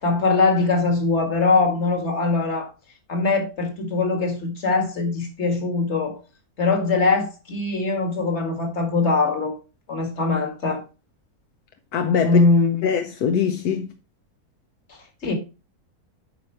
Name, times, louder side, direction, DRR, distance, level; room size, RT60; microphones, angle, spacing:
voice 1, 0.0-2.7 3.1-6.2 6.6-9.5 9.9-10.8 12.2-12.8 14.9-15.3, left 3 dB, 45° left, 2.1 m, -22 dB
voice 2, 11.9-12.4 12.8-13.9, left 7 dB, 80° left, 1.3 m, -22 dB
9.3 x 5.0 x 4.4 m
omnidirectional pair, 1.6 m